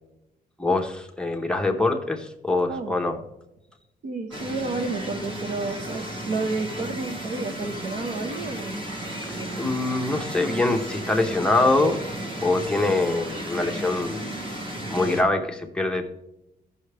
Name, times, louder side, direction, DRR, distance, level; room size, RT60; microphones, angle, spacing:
voice 1, 0.6-3.2 9.3-12.0 12.4-14.3 14.9-16.0, left 2 dB, 5° left, 3 dB, 0.7 m, -24 dB
voice 2, 4.0-8.8 9.3-9.7, right 3 dB, 50° right, 6 dB, 0.9 m, -31 dB
sound 1, 4.3-15.2, right 1 dB, 30° right, 1.5 m, -34 dB
15.0 x 5.8 x 3.3 m, 0.87 s
cardioid pair, 175°, 16 cm